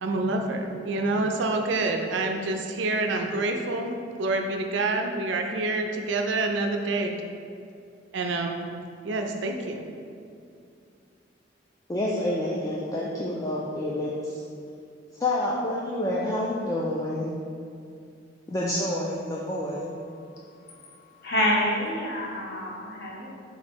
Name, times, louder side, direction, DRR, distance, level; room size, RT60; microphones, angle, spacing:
voice 1, 0.0-7.2 8.1-8.7 9.0-9.8, right 2 dB, 65° right, 3 dB, 0.4 m, -27 dB
voice 2, 11.9-14.4 15.2-17.3 18.5-19.9, left 1 dB, 20° left, -5 dB, 0.3 m, -28 dB
voice 3, 21.2-23.4, left 1 dB, 50° left, -4 dB, 0.8 m, -27 dB
3.7 x 3.0 x 4.3 m, 2.5 s
head